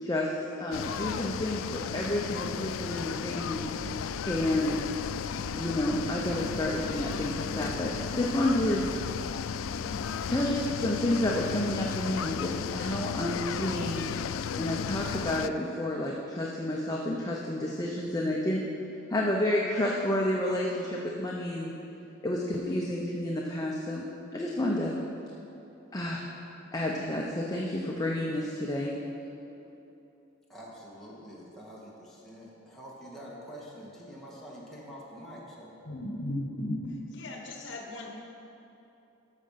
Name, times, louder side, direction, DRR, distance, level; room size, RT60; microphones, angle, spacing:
voice 1, 0.0-3.7 4.2-4.9 5.6-8.8 10.3-14.1 14.6-18.6 19.1-21.7 22.2-24.1 24.3-24.9 25.9-26.2 26.7-29.0, left 1 dB, 20° left, -2 dB, 0.8 m, -30 dB
sound 1, 0.7-15.5, left 7 dB, 80° left, 0.4 m, -34 dB
sound 2, 3.5-10.5, equal, 45° right, 0.9 m, -46 dB
voice 2, 30.5-35.8, equal, ahead, -6 dB, 2.0 m, -46 dB
voice 3, 35.8-36.8 37.1-38.1, left 1 dB, 65° left, 1 dB, 1.3 m, -35 dB
12.5 x 6.5 x 5.8 m, 2.9 s
head